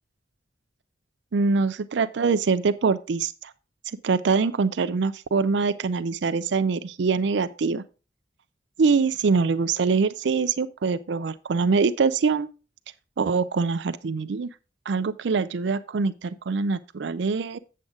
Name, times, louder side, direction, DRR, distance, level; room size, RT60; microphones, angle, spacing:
voice 1, 1.3-3.5 4.0-7.8 8.8-12.5 13.2-14.5 14.9-17.6, right 4 dB, 70° right, 0.4 m, -24 dB
7.8 x 7.4 x 3.6 m
head